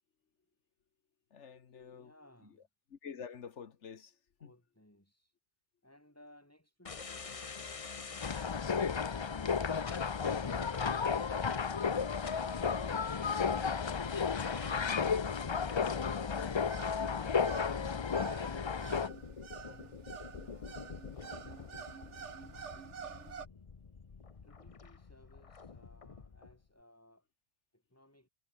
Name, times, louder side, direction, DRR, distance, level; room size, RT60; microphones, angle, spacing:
voice 1, 1.3-2.1 2.9-4.2 4.4-4.5, left 7 dB, 65° left, 1.5 m, -48 dB
voice 2, 1.9-2.7 4.4-5.4 5.8-8.6 19.6-22.0 22.2-23.2 24.4-27.3 27.7-28.3, left 1 dB, 10° left, 5.4 m, -62 dB
sound 1, 6.8-26.6, left 5 dB, 30° left, 0.8 m, -47 dB
sound 2, 8.2-19.1, left 6 dB, 50° left, 0.3 m, -33 dB
sound 3, 16.1-23.5, right 6 dB, 65° right, 1.6 m, -49 dB
omnidirectional pair, 1.3 m